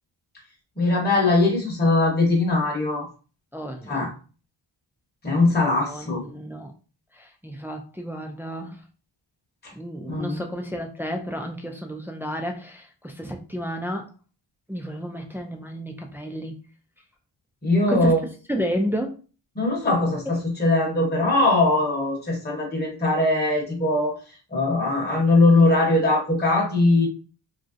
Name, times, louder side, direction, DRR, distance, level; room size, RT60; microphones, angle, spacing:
voice 1, 0.8-3.1 3.9-4.1 5.2-6.2 9.6-9.7 10.1-10.4 17.6-18.2 19.6-24.2 24.5-27.1, left 2 dB, 20° left, -3 dB, 0.9 m, -21 dB
voice 2, 3.5-4.1 5.9-6.7 7.1-8.8 9.7-14.1 14.7-16.5 17.9-18.2 18.5-19.2, equal, 5° right, 2 dB, 0.3 m, -31 dB
3.0 x 2.6 x 2.5 m, 0.36 s
wide cardioid pair, 120°, 48 cm